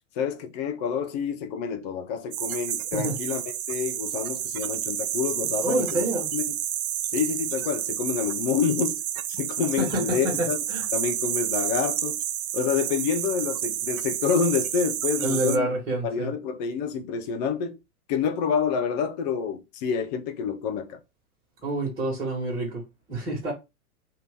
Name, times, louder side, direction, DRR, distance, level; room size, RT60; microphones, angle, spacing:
voice 1, 0.2-3.4 3.7-6.1 6.3-6.4 7.1-9.0 9.3-10.6 10.9-12.2 12.5-15.7 16.0-17.8 18.1-21.0, left 6 dB, 30° left, 0.4 m, -28 dB
sound 1, 2.3-15.6, right 11 dB, 75° right, 0.5 m, -30 dB
voice 2, 5.6-6.3 9.8-10.9 15.2-16.3 21.6-22.8 23.1-23.5, right 1 dB, 20° right, 1.5 m, -27 dB
2.9 x 2.7 x 3.4 m
hypercardioid pair, 110°, 44 cm